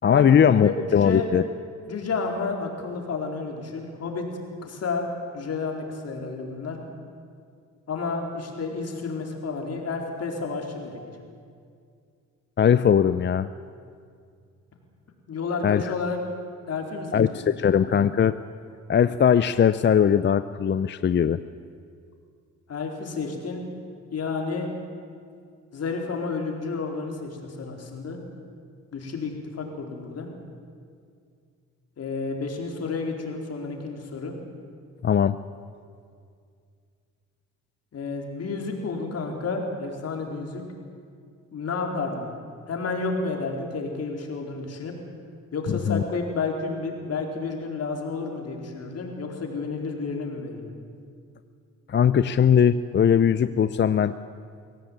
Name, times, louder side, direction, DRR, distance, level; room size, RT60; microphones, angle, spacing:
voice 1, 0.0-1.4 12.6-13.5 15.6-15.9 17.1-18.4 18.9-21.4 35.0-35.4 45.7-46.0 51.9-54.1, left 8 dB, 40° left, 13 dB, 0.6 m, -20 dB
voice 2, 0.6-1.3 1.8-4.3 4.6-5.1 5.3-6.8 7.9-11.0 15.3-16.2 16.7-17.7 22.7-23.6 24.1-24.7 25.7-28.2 28.9-30.3 32.0-34.3 37.9-40.6 41.5-42.3 42.7-44.9 45.5-50.7, left 4 dB, 55° left, 1 dB, 4.4 m, -31 dB
23.5 x 17.0 x 8.9 m, 2.2 s
cardioid pair, 90°, 30 cm